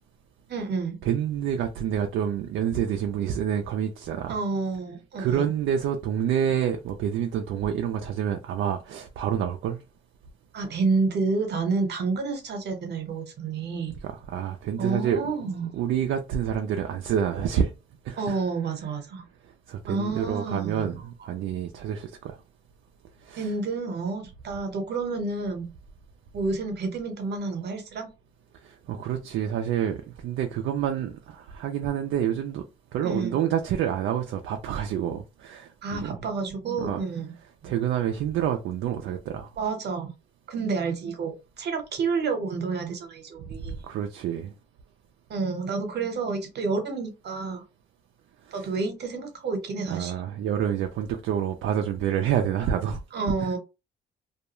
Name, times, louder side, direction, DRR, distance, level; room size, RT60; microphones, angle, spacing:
voice 1, 0.5-1.0 4.3-5.5 10.5-13.9 14.8-15.8 18.2-19.2 19.9-21.0 23.4-25.6 26.3-28.1 33.0-33.4 35.8-37.3 37.6-37.8 39.6-40.1 40.5-43.8 45.3-47.6 48.5-50.1 53.1-53.6, right 4 dB, 60° right, 1.0 m, -29 dB
voice 2, 1.0-4.4 5.2-9.8 14.0-17.7 18.1-18.4 19.7-21.0 21.3-22.4 23.2-23.5 28.6-32.6 32.9-36.2 36.8-37.0 37.6-39.5 43.7-44.5 48.5-48.7 49.9-53.0, right 9 dB, 75° right, 0.4 m, -28 dB
2.3 x 2.2 x 2.9 m
cardioid pair, 90°, 20 cm